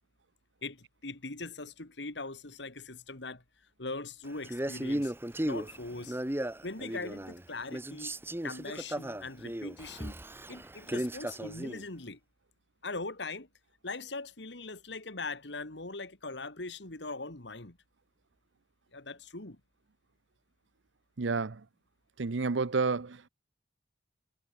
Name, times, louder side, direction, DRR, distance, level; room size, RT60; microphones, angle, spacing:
voice 1, 0.6-3.4 3.8-5.1 5.4-6.2 6.6-8.2 8.4-10.2 10.5-12.2 12.8-13.5 13.8-17.8 18.9-19.6, left 3 dB, 70° left, 2.5 m, -41 dB
Male speech man speaking, 4.4-7.4 7.7-11.8, right 1 dB, 15° right, 1.0 m, -36 dB
voice 2, 21.2-21.6 22.2-23.3, right 4 dB, 90° right, 0.8 m, -30 dB
head